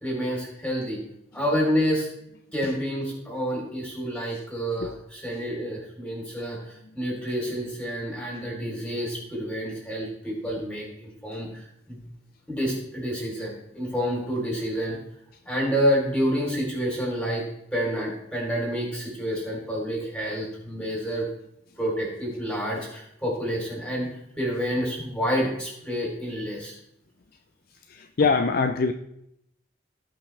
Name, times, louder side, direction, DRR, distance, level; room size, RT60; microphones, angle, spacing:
voice 1, 0.0-1.0 1.3-2.1 2.5-12.0 12.5-15.0 15.5-17.4 17.7-21.3 21.8-24.1 24.4-26.7, equal, 5° left, -3 dB, 3.6 m, -28 dB
voice 2, 27.9-28.9, left 4 dB, 50° left, 7 dB, 0.5 m, -24 dB
17.5 x 5.8 x 3.4 m, 0.79 s
head